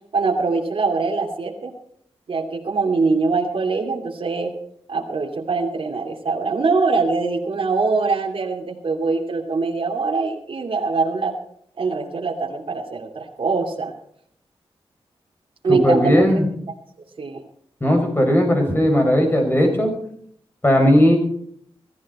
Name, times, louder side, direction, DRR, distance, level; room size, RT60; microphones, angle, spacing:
voice 1, 0.1-1.7 2.3-4.5 4.9-11.3 11.8-13.9 15.6-16.4 17.2-17.4, right 4 dB, 60° right, -1 dB, 2.6 m, -23 dB
voice 2, 15.7-16.5 17.8-19.9 20.6-21.2, equal, 20° left, 3 dB, 6.0 m, -17 dB
16.0 x 14.0 x 4.3 m, 0.66 s
wide cardioid pair, 90°, 10 cm